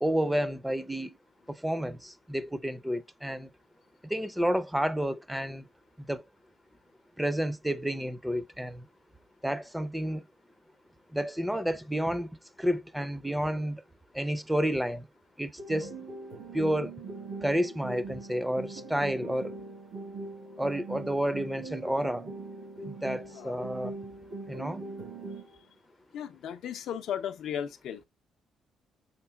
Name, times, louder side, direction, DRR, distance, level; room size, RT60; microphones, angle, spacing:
voice 1, 0.0-1.2 1.5-3.5 4.0-5.7 6.1-6.2 7.2-8.9 9.4-10.2 11.1-12.3 12.6-13.8 14.1-15.1 15.4-15.9 16.5-16.9 17.4-19.6 20.6-22.3 22.9-23.9 24.5-24.8, equal, 5° right, 0.5 m, -30 dB
sound 1, 15.6-25.6, right 3 dB, 75° right, 3.1 m, -41 dB
voice 2, 26.1-28.0, left 9 dB, 75° left, 0.5 m, -35 dB
5.7 x 3.7 x 2.3 m
cardioid pair, 90°, 0 cm